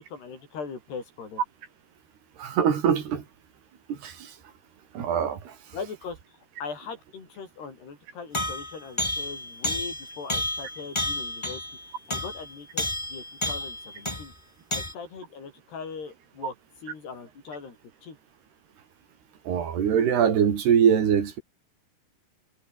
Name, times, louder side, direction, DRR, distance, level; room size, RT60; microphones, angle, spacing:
voice 1, 0.0-1.4 5.7-11.6 12.1-14.3 14.7-16.5 16.8-17.8 18.0-18.2, left 5 dB, 80° left, 8.0 m, -40 dB
voice 2, 2.4-3.2 3.9-4.3 5.0-5.6 19.5-21.4, right 8 dB, 80° right, 5.3 m, -23 dB
sound 1, 8.3-14.3 14.7-14.9, left 1 dB, 10° left, 2.4 m, -31 dB
omnidirectional pair, 4.6 m